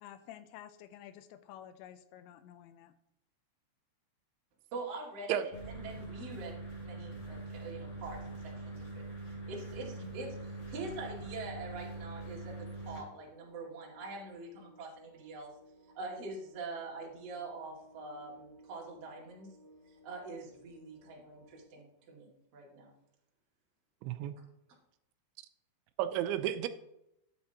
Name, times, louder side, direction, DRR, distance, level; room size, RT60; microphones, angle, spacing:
voice 1, 0.0-2.9, left 11 dB, 80° left, 11 dB, 2.8 m, -51 dB
voice 2, 4.7-15.5 15.9-19.5 19.9-22.9, right 3 dB, 45° right, -3 dB, 2.5 m, -44 dB
sound 1, 5.5-13.0, right 2 dB, 30° left, 3.3 m, -43 dB
sound 2, 11.7-21.6, equal, 55° left, 4.6 m, -60 dB
voice 3, 24.0-24.4 26.0-26.7, right 11 dB, 85° right, 10 dB, 2.9 m, -32 dB
12.5 x 8.6 x 2.9 m, 0.80 s
omnidirectional pair, 5.3 m